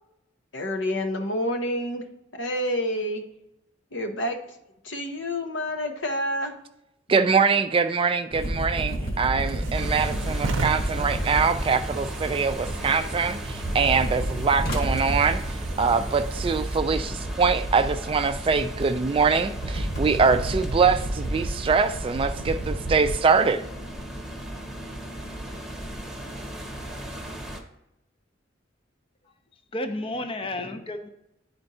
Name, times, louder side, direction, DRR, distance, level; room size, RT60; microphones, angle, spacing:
voice 1, 0.5-2.1 2.4-3.2 3.9-4.4 4.8-6.5, equal, 70° left, 4 dB, 0.9 m, -28 dB
voice 2, 7.1-15.4 15.8-23.6, right 5 dB, 30° right, 9 dB, 0.3 m, -23 dB
sound 1, 8.3-13.0 13.3-23.1, right 1 dB, 50° left, 1.6 m, -31 dB
sound 2, 9.1-16.8, right 3 dB, 85° right, 0.6 m, -37 dB
sound 3, 9.7-27.6, right 1 dB, ahead, 0.9 m, -35 dB
voice 3, 29.2-31.1, left 1 dB, 30° left, 7 dB, 0.6 m, -33 dB
11.0 x 4.4 x 2.7 m, 0.86 s
head